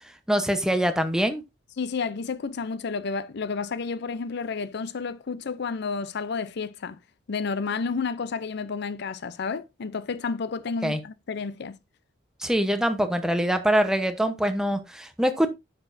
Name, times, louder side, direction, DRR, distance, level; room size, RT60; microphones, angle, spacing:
voice 1, 0.3-1.4 10.8-11.0 12.4-15.5, equal, 5° right, 0.9 m, -24 dB
voice 2, 1.8-7.0 7.3-11.8, left 5 dB, 60° left, 0.5 m, -31 dB
9.6 x 6.8 x 2.6 m
head